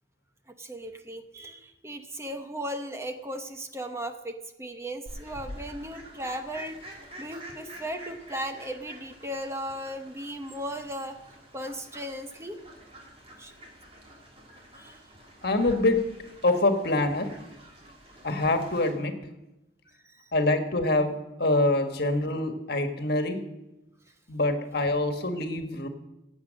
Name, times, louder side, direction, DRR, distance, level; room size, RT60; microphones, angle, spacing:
voice 1, 0.5-11.2 11.5-12.6 13.4-13.5 14.7-15.0 20.0-20.3, equal, 15° right, 6 dB, 0.9 m, -37 dB
Fowl, 5.1-18.9, equal, 35° right, 3.1 m, -47 dB
voice 2, 15.4-16.0 16.4-17.3 18.2-19.1 20.3-21.1 21.4-23.4 24.3-25.9, left 2 dB, 60° left, 6 dB, 1.6 m, -25 dB
16.5 x 8.2 x 6.4 m, 0.95 s
head